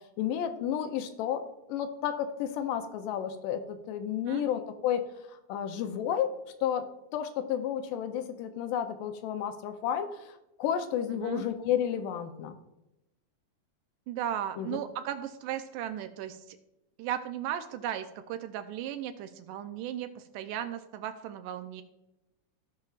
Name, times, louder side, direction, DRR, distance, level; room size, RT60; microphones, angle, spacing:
voice 1, 0.2-1.4 1.7-5.1 5.5-6.3 6.6-6.9 7.1-12.6 14.6-14.8, left 9 dB, 85° left, 8 dB, 2.3 m, -31 dB
voice 2, 14.1-16.6 17.0-21.8, right 10 dB, 85° right, 9 dB, 2.1 m, -36 dB
16.0 x 5.7 x 2.4 m, 0.91 s
omnidirectional pair, 3.8 m